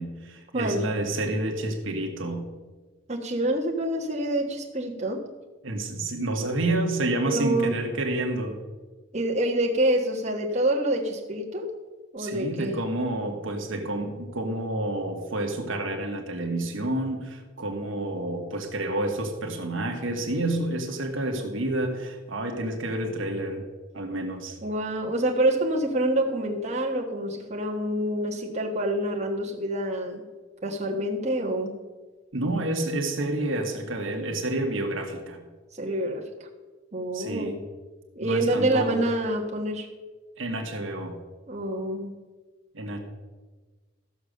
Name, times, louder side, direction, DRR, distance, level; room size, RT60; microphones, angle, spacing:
voice 1, 0.0-2.4 5.6-8.6 12.2-23.7 23.9-24.6 32.3-35.4 37.1-37.6 38.2-39.0 40.4-41.2 42.7-43.0, right 1 dB, 75° right, 3 dB, 1.4 m, -29 dB
voice 2, 3.1-5.2 7.2-7.8 9.1-11.7 12.1-12.7 24.6-30.2 30.6-31.7 35.7-36.3 36.9-37.6 38.1-39.9 41.5-42.1, right 1 dB, 35° right, -2 dB, 1.5 m, -27 dB
14.0 x 6.2 x 6.6 m, 1.3 s
head